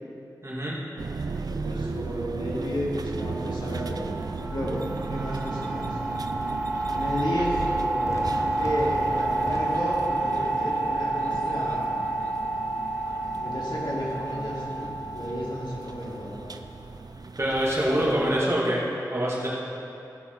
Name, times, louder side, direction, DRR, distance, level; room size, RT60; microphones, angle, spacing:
voice 1, 0.4-0.8 17.4-18.8 19.1-19.5, right 1 dB, 40° right, -6 dB, 2.4 m, -25 dB
sound 1, 1.0-18.4, right 4 dB, 65° right, 0.4 m, -36 dB
voice 2, 1.3-4.2 4.5-6.0 6.9-8.2 8.6-12.1 13.3-14.9 15.1-16.3 17.9-18.4, equal, 85° left, -5 dB, 2.0 m, -32 dB
sound 2, 3.2-16.6, right 2 dB, 15° right, 1.2 m, -30 dB
Fireworks, 8.1-13.1, left 1 dB, 45° left, 1.0 m, -40 dB
15.0 x 5.7 x 4.0 m, 2.8 s
wide cardioid pair, 60°, 7 cm